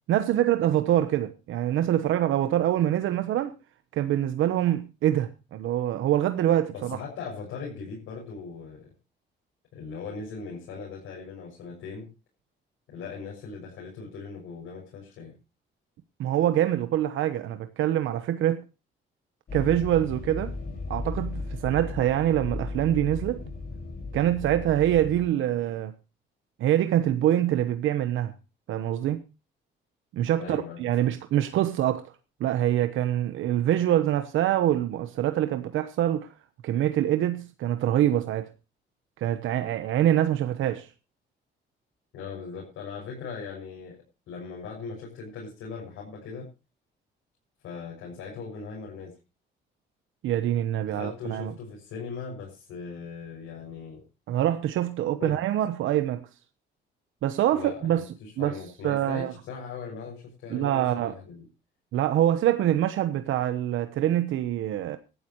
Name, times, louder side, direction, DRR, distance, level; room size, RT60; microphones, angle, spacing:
voice 1, 0.1-3.5 3.9-7.0 16.2-18.6 19.5-20.5 20.9-23.4 24.1-25.9 26.6-28.3 28.7-29.2 30.1-32.0 32.4-36.3 36.6-38.5 39.2-40.9 50.2-51.5 54.3-56.3 57.2-58.0 58.4-59.3 60.5-61.2 61.9-65.0, right 12 dB, 85° right, 1.1 m, -25 dB
voice 2, 6.7-8.9 9.7-12.1 12.9-15.3 30.4-31.1 42.1-44.0 44.3-46.5 47.6-49.1 50.8-54.0 55.2-55.4 57.5-61.4, left 5 dB, 85° left, 6.6 m, -39 dB
sound 1, 19.5-25.3, left 3 dB, 50° left, 5.7 m, -36 dB
18.5 x 12.5 x 3.1 m
cardioid pair, 90°, 20 cm